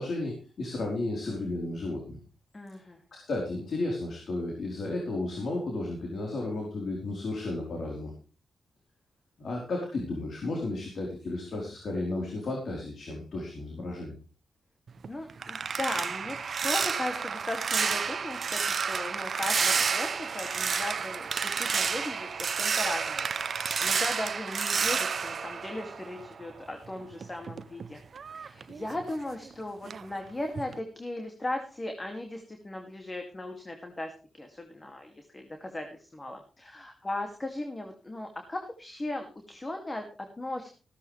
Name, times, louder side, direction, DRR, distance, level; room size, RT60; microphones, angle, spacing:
voice 1, 0.0-2.2 3.1-8.1 9.4-14.2, left 2 dB, 65° left, 0 dB, 4.2 m, -33 dB
voice 2, 2.5-3.0 15.1-16.4 16.6-23.3 23.8-28.0 28.3-40.7, left 1 dB, 30° left, 4 dB, 2.6 m, -37 dB
sound 1, 14.9-26.5 26.9-29.5 29.9-30.2 30.6-30.8, right 6 dB, 60° right, 0.7 m, -30 dB
15.5 x 13.0 x 3.4 m, 0.36 s
cardioid pair, 55°, 0 cm